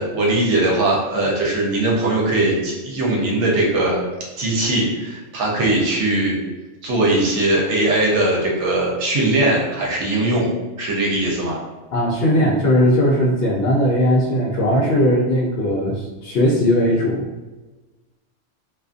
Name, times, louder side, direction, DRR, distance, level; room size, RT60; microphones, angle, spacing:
voice 1, 0.0-4.0 4.4-6.4 6.8-10.5 10.8-11.6, right 2 dB, 70° right, -3 dB, 0.9 m, -20 dB
voice 2, 11.9-17.2, equal, 65° left, -4 dB, 0.7 m, -18 dB
2.4 x 2.4 x 2.4 m, 1.2 s
omnidirectional pair, 1.3 m